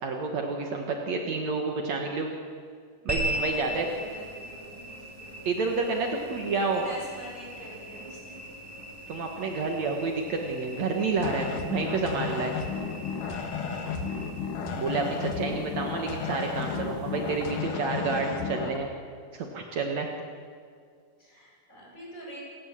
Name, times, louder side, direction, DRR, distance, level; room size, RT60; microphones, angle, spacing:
voice 1, 0.0-2.3 3.1-3.9 5.4-6.8 9.1-12.5 14.7-18.9 19.3-20.1, right 4 dB, 60° right, 2 dB, 2.6 m, -29 dB
voice 2, 3.0-5.1 6.1-8.4 9.4-9.7 19.3-19.5 21.2-22.4, equal, 25° left, -4 dB, 8.4 m, -47 dB
sound 1, 3.1-17.7, equal, 5° right, 7.0 m, -40 dB
sound 2, 11.2-18.8, left 6 dB, 80° left, 3.2 m, -33 dB
28.5 x 17.5 x 7.5 m, 2.1 s
omnidirectional pair, 3.6 m